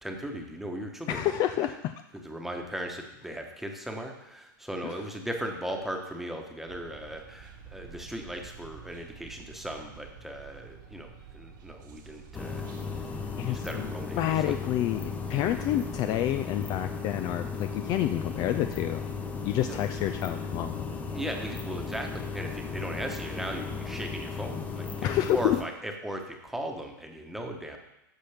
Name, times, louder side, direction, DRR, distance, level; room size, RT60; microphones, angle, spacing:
voice 1, 0.0-1.3 2.1-12.7 13.3-14.6 15.3-15.5 19.7-19.8 21.1-27.8, right 1 dB, ahead, 2 dB, 1.2 m, -37 dB
voice 2, 1.1-2.0 4.8-4.9 13.4-13.9 14.2-19.0 19.4-20.8 25.0-25.6, left 12 dB, 35° left, 9 dB, 0.4 m, -28 dB
sound 1, 6.7-16.3, right 6 dB, 70° right, 1.6 m, -49 dB
sound 2, 12.3-25.6, left 5 dB, 15° left, 0.9 m, -36 dB
13.5 x 5.6 x 3.5 m, 0.88 s
hypercardioid pair, 120°, 11 cm